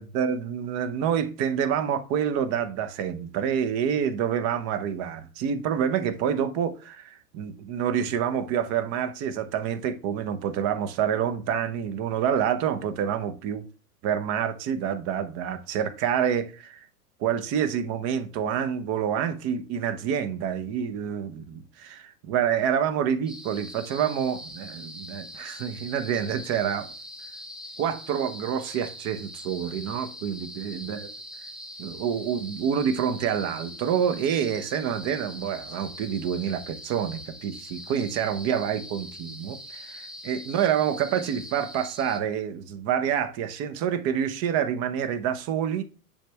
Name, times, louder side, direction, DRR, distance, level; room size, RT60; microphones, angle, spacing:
voice 1, 0.0-13.6 14.0-16.9 17.2-26.9 27.8-31.1 31.8-45.8, right 8 dB, 35° right, 0.9 m, -27 dB
sound 1, 23.3-42.2, left 1 dB, ahead, 0.6 m, -42 dB
10.0 x 3.4 x 3.3 m
hypercardioid pair, 110°, 46 cm